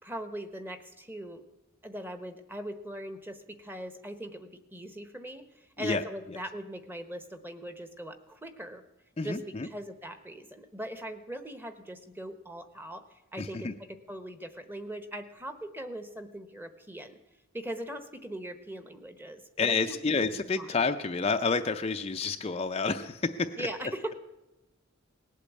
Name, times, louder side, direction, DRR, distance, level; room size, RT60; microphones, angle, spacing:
voice 1, 0.0-1.4 1.8-8.8 9.2-9.4 9.6-13.7 14.1-17.2 17.5-20.0 20.3-20.8 23.6-24.1, right 1 dB, 10° right, 9 dB, 1.0 m, -40 dB
voice 2, 9.2-9.7 13.4-13.7 19.6-23.7, left 4 dB, 30° left, 6 dB, 0.5 m, -29 dB
18.5 x 8.4 x 8.4 m, 1.0 s
head